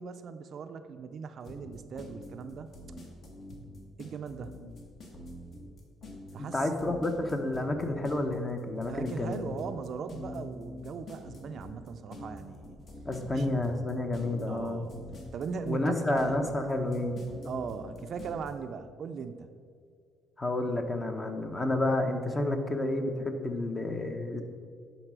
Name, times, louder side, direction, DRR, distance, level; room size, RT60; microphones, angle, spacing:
voice 1, 0.0-2.7 4.0-4.6 6.3-6.7 8.8-12.8 13.3-13.5 14.5-14.9 15.3-16.3 17.4-19.5, right 6 dB, 50° right, 9 dB, 0.4 m, -39 dB
sound 1, 1.4-18.5, left 1 dB, 50° left, 1.7 m, -46 dB
voice 2, 6.4-9.4 10.3-10.4 13.0-14.9 15.7-17.2 20.4-24.4, left 2 dB, 20° left, 6 dB, 0.8 m, -30 dB
10.0 x 4.1 x 6.0 m, 2.2 s
cardioid pair, 115°, 0 cm